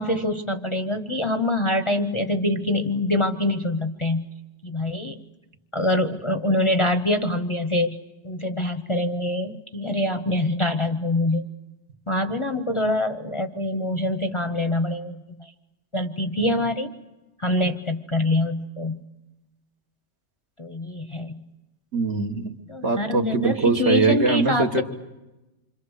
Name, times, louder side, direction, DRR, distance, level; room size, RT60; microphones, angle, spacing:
voice 1, 0.0-4.3 4.6-5.2 5.7-8.0 8.2-11.5 12.1-15.5 15.9-16.9 17.4-19.0 20.6-21.4 22.7-24.8, left 1 dB, 30° left, 7 dB, 0.8 m, -25 dB
voice 2, 21.9-22.6 22.8-24.8, right 4 dB, 60° right, 4 dB, 1.8 m, -22 dB
27.0 x 25.5 x 6.4 m, 1.0 s
omnidirectional pair, 1.3 m